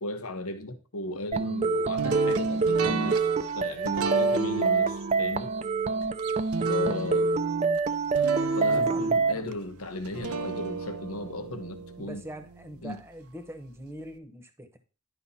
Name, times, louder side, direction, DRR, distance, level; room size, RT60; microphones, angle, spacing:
voice 1, 0.0-5.5 6.7-7.3 8.5-12.2 12.8-13.0, left 2 dB, 85° left, 1.2 m, -36 dB
sound 1, 1.3-9.3, right 4 dB, 30° right, 0.5 m, -26 dB
sound 2, 2.0-13.0, right 4 dB, 90° right, 0.7 m, -35 dB
voice 2, 8.7-9.6 12.0-14.8, right 1 dB, 10° right, 1.0 m, -43 dB
11.0 x 5.3 x 4.2 m
head